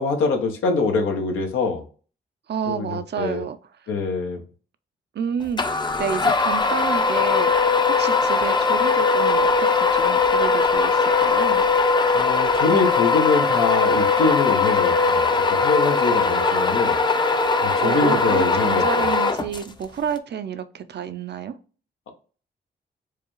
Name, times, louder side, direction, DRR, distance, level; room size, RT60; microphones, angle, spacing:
voice 1, 0.0-1.8 2.7-3.4 3.9-4.4 12.1-17.0 17.6-19.1, left 4 dB, 90° left, 4 dB, 0.8 m, -24 dB
voice 2, 2.5-3.6 5.1-11.6 17.8-21.5, right 7 dB, 55° right, 11 dB, 0.5 m, -30 dB
sound 1, 5.6-19.8, left 4 dB, 20° left, 0.5 m, -20 dB
4.7 x 2.3 x 3.0 m, 0.38 s
supercardioid pair, 55°, 20 cm